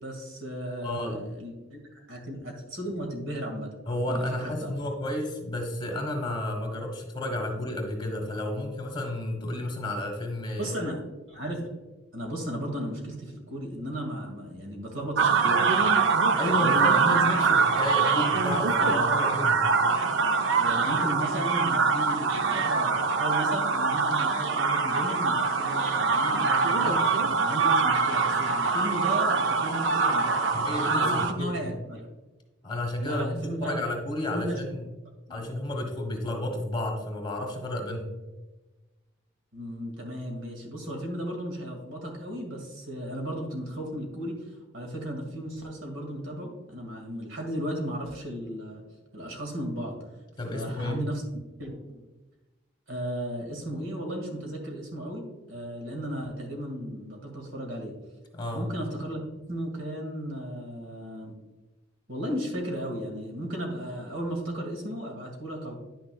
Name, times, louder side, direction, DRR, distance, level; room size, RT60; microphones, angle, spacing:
voice 1, 0.0-1.8 2.1-3.7 4.1-4.2 4.6-4.7 7.2-7.3 10.6-11.0 11.3-11.6 12.1-15.7 16.5-17.4 18.1-18.3 18.8-19.1 20.6-27.0 27.4-30.5 31.0-32.1 33.0-33.8 34.3-34.6 35.3-35.4 39.5-44.4 44.7-48.8 49.1-50.0 50.5-51.2 51.6-52.0 52.9-58.0 58.5-59.2 59.5-61.4 62.1-65.7, equal, 85° right, 2 dB, 2.0 m, -35 dB
voice 2, 0.8-1.2 3.9-10.7 16.3-19.7 26.8-27.4 30.5-31.7 32.6-34.9 35.3-38.1 50.4-51.0 58.3-58.7, left 1 dB, 25° left, 3 dB, 1.4 m, -32 dB
sound 1, 15.2-31.3, right 4 dB, 70° right, 0.6 m, -24 dB
10.0 x 6.1 x 2.3 m, 1.1 s
head